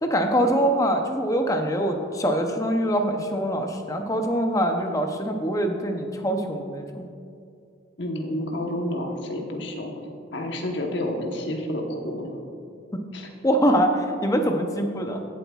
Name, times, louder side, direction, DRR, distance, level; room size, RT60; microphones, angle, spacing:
voice 1, 0.0-7.1 12.9-13.0 13.4-15.3, equal, 15° left, 4 dB, 0.5 m, -24 dB
voice 2, 8.0-12.4 13.1-13.3, left 1 dB, 65° left, 2 dB, 1.0 m, -30 dB
16.0 x 8.0 x 2.3 m, 2.4 s
head